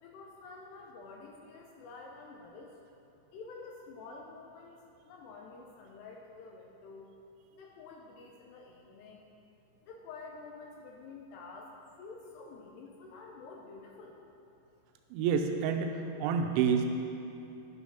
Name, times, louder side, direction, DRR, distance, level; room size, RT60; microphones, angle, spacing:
voice 1, 0.0-2.7 3.3-7.1 7.5-9.3 9.8-14.2, left 3 dB, 80° left, 0 dB, 2.5 m, -49 dB
voice 2, 15.1-16.9, right 6 dB, 90° right, 5 dB, 3.0 m, -28 dB
12.0 x 4.8 x 5.6 m, 2.9 s
omnidirectional pair, 5.3 m